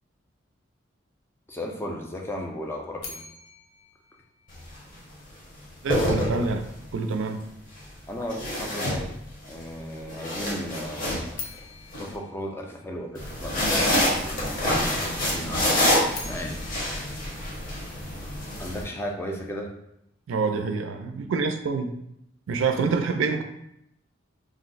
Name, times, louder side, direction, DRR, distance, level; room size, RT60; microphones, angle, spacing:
voice 1, 1.5-3.2 8.1-9.1 9.5-11.4 12.0-15.8 16.2-16.8 18.6-19.7, equal, 10° left, 1 dB, 0.4 m, -35 dB
sound 1, 3.0-5.1 11.3-13.5 15.8-18.3, left 5 dB, 85° left, 0.5 m, -44 dB
sound 2, 4.5-4.7 5.7-6.8 8.3-9.5 9.9-12.0 13.1-18.8, left 1 dB, 45° left, 0.8 m, -27 dB
voice 2, 5.8-6.7 6.9-7.4 20.3-21.9 22.5-23.4, right 4 dB, 75° right, 7 dB, 0.3 m, -26 dB
2.5 x 2.0 x 3.9 m, 0.79 s
head